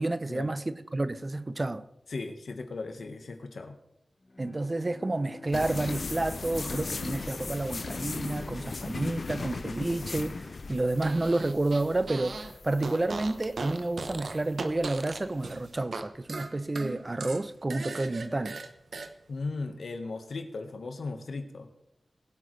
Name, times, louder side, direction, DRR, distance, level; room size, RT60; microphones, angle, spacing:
voice 1, 0.0-1.8 4.4-18.6, right 2 dB, 30° right, 0.6 m, -30 dB
voice 2, 2.1-3.8 19.3-21.7, left 3 dB, 85° left, 1.4 m, -37 dB
Bowed string instrument, 4.2-8.8, left 2 dB, 45° left, 1.1 m, -50 dB
sound 1, 5.5-15.7, left 4 dB, 60° left, 0.5 m, -38 dB
Fart, 11.0-12.5 12.8-16.0 16.3-19.1, right 3 dB, 80° right, 0.9 m, -38 dB
21.0 x 8.3 x 3.3 m
wide cardioid pair, 100°, 0 cm